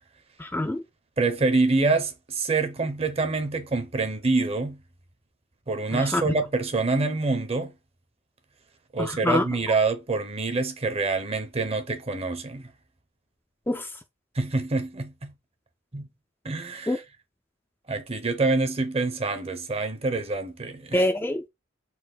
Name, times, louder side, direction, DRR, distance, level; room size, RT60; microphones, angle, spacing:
voice 1, 0.4-0.8 5.9-6.3 9.0-9.4 13.7-13.9 16.9-17.0 20.9-21.5, left 1 dB, 10° left, 0.4 m, -25 dB
voice 2, 1.2-4.8 5.7-7.7 8.9-12.7 14.3-15.3 15.9-16.1 16.4-17.0 17.9-21.0, right 3 dB, 30° right, 0.7 m, -26 dB
4.3 x 2.5 x 3.8 m
head